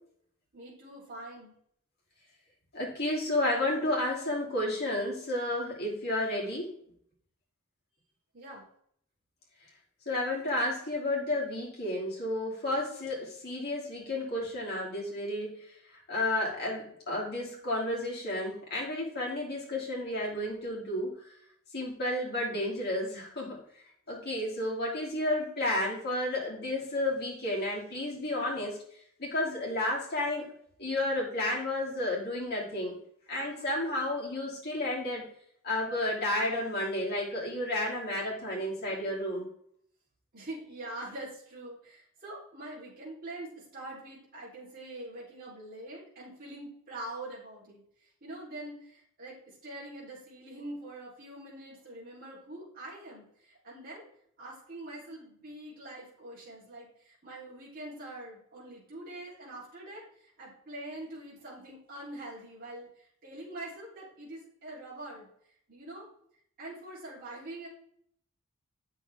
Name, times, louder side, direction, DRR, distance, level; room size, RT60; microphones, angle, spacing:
voice 1, 0.5-1.5 8.3-8.7 40.3-54.1 54.4-65.3 65.7-66.1 66.6-67.7, right 1 dB, 45° right, -8 dB, 3.3 m, -44 dB
voice 2, 2.7-6.7 10.1-15.6 16.1-21.1 21.7-23.6 24.1-28.8 29.2-30.5 30.8-32.9 33.3-35.3 35.6-39.5, left 1 dB, 50° left, -4 dB, 2.9 m, -31 dB
8.3 x 6.2 x 3.4 m, 0.66 s
head